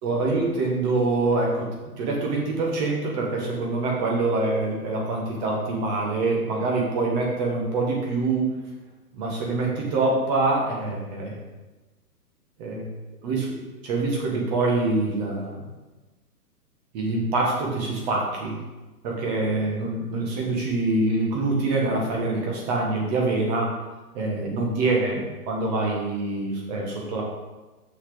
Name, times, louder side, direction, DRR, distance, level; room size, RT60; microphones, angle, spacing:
voice 1, 0.0-1.7 2.0-8.5 9.1-11.4 12.6-12.9 13.2-13.5 13.8-15.6 16.9-18.6 19.0-23.7 24.1-27.2, right 2 dB, 25° right, -2 dB, 1.7 m, -25 dB
6.4 x 6.4 x 3.9 m, 1.1 s
hypercardioid pair, 150°, 48 cm